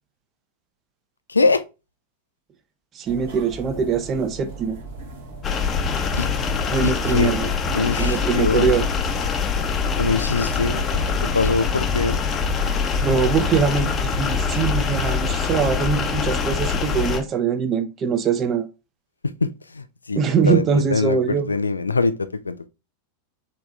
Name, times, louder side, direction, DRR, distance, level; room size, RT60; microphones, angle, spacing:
voice 1, 1.3-1.6 6.2-6.3 6.8-7.3 7.7-8.7 10.0-10.8 11.3-12.2 19.4-20.2 20.5-22.7, left 4 dB, 80° left, 0.3 m, -23 dB
voice 2, 2.9-4.8 6.7-7.5 8.0-8.9 13.0-18.7 20.2-21.5, right 6 dB, 30° right, 0.6 m, -22 dB
sound 1, 3.1-11.4, right 2 dB, 55° right, 1.2 m, -39 dB
sound 2, 5.4-17.2, left 5 dB, 25° left, 0.7 m, -24 dB
3.9 x 3.4 x 3.3 m
figure-of-eight pair, 90°, 0 cm